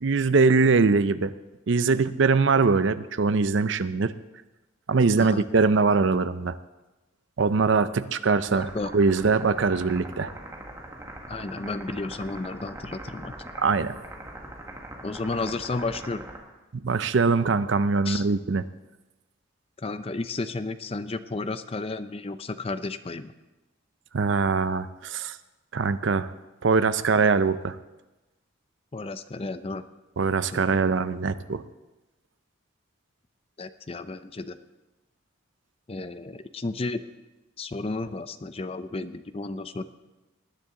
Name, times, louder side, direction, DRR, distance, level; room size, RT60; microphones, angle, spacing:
voice 1, 0.0-1.3 1.7-4.1 4.9-6.5 7.4-8.7 8.9-10.3 13.6-13.9 16.8-18.6 24.1-25.4 25.7-26.3 26.6-27.8 30.2-31.6, right 4 dB, 65° right, 13 dB, 0.5 m, -22 dB
voice 2, 8.5-8.9 11.3-13.4 15.0-16.2 18.0-18.3 19.8-23.3 28.9-29.8 30.5-30.8 33.6-34.6 35.9-37.0 37.6-39.8, left 3 dB, 30° left, 12 dB, 0.5 m, -32 dB
sound 1, 8.5-16.4, right 1 dB, 15° right, 1.6 m, -42 dB
19.5 x 9.7 x 3.8 m, 1.1 s
head